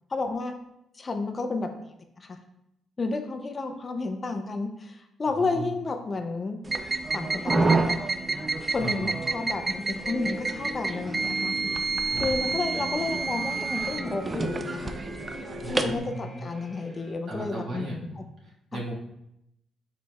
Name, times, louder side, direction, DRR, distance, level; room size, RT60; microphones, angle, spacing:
voice 1, 0.1-0.5 0.9-1.7 2.2-2.4 3.0-6.6 7.1-8.1 8.7-11.5 12.2-15.0 15.7-18.2, left 3 dB, 35° left, 6 dB, 0.5 m, -31 dB
voice 2, 5.3-5.7 8.8-9.2 12.1-12.3 12.7-12.8 15.6-16.6 16.9-17.0 17.2-18.9, right 1 dB, 60° right, -5 dB, 1.6 m, -37 dB
sound 1, 6.7-16.0, right 3 dB, 25° right, 0.4 m, -29 dB
sound 2, 8.6-17.1, right 1 dB, 10° right, 1.0 m, -48 dB
sound 3, 10.0-15.9, left 1 dB, 75° left, 1.0 m, -39 dB
5.0 x 4.1 x 2.3 m, 0.83 s
cardioid pair, 90°, 0 cm